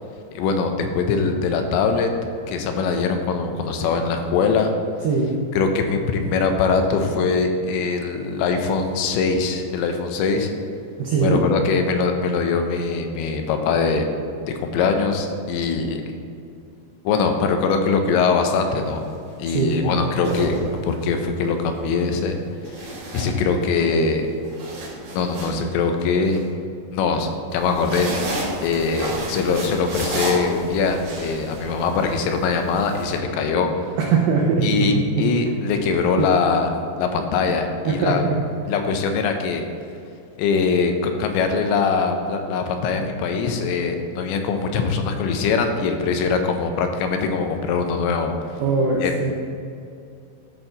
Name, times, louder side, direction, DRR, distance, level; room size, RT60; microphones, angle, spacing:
voice 1, 0.3-2.1 2.5-4.7 5.6-10.5 11.2-14.1 14.5-16.0 17.0-19.0 19.4-20.6 20.8-22.4 22.7-24.3 25.1-26.4 26.9-28.1 28.6-33.9 34.6-36.7 37.0-38.2 38.7-39.6 40.4-48.3 49.0-49.3, left 5 dB, 85° left, 5 dB, 3.0 m, -22 dB
voice 2, 11.0-11.4 19.5-19.9 34.0-34.9 36.2-36.3 37.9-38.3 48.6-49.3, right 4 dB, 85° right, -2 dB, 1.9 m, -21 dB
sound 1, 18.8-19.1 20.0-21.2 22.7-23.9 24.3-26.4 27.5-33.2, right 2 dB, 60° right, 3.2 m, -31 dB
13.0 x 4.5 x 3.9 m, 2.4 s
omnidirectional pair, 5.1 m